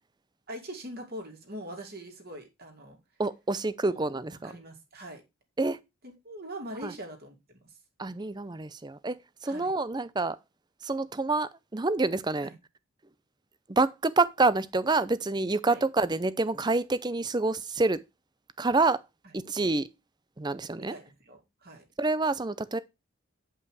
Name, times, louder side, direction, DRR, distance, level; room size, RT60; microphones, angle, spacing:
voice 1, 0.5-3.0 3.8-4.0 4.4-5.2 6.0-7.7 9.4-9.8 12.4-12.5 15.7-15.8 19.2-19.3 20.7-21.8, right 1 dB, 45° right, 2.6 m, -43 dB
voice 2, 3.2-4.5 5.6-5.8 6.8-6.9 8.0-9.2 9.4-10.4 10.8-12.5 13.7-18.0 18.6-19.0 19.3-19.9 20.4-21.0 22.0-22.8, right 3 dB, 20° right, 0.5 m, -27 dB
9.5 x 5.5 x 4.7 m
head